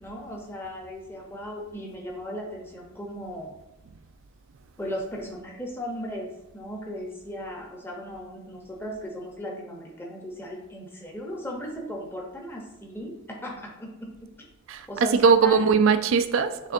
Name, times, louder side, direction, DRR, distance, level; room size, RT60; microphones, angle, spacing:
voice 1, 0.0-3.5 4.8-6.3 6.5-14.1 14.9-15.6, equal, 10° left, -1 dB, 0.8 m, -36 dB
voice 2, 14.7-16.7, right 5 dB, 75° right, 11 dB, 0.4 m, -20 dB
6.1 x 3.3 x 2.6 m, 0.94 s
head